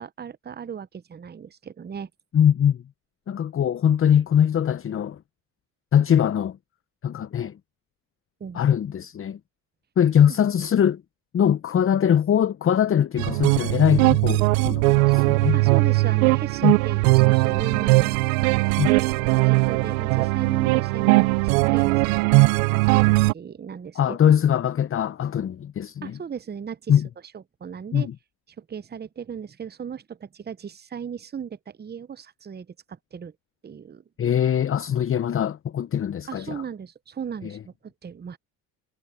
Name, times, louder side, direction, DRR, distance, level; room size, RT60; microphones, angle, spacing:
voice 1, 0.0-2.1 8.4-8.7 10.3-10.4 15.2-15.3 15.5-18.2 18.9-22.2 22.7-24.3 26.0-27.0 27.3-28.1 28.6-33.3 33.6-34.0 36.3-38.4, right 7 dB, 25° right, 0.9 m, -37 dB
voice 2, 2.3-2.8 3.3-5.2 5.9-6.6 7.0-7.5 8.5-9.4 10.0-11.0 11.3-15.6 16.6-16.7 18.8-18.9 24.0-26.2 26.9-27.1 27.9-28.1 34.2-36.6, left 9 dB, 30° left, 0.8 m, -21 dB
sound 1, 13.2-23.3, right 24 dB, 85° right, 0.7 m, -19 dB
hypercardioid pair, 70°, 41 cm